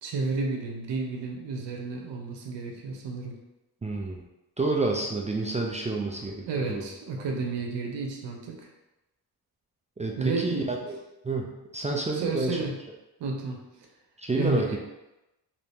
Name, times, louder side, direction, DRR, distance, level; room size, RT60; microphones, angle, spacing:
voice 1, 0.0-3.4 6.5-8.7 10.2-10.7 12.1-12.7 13.2-13.6 14.4-14.8, right 3 dB, 80° right, 1 dB, 0.8 m, -31 dB
voice 2, 3.8-4.2 4.6-6.8 10.0-11.0 11.2-11.5 11.7-12.6 14.2-14.8, right 3 dB, 20° right, -1 dB, 0.3 m, -29 dB
3.0 x 2.7 x 3.4 m, 0.96 s
cardioid pair, 100°, 42 cm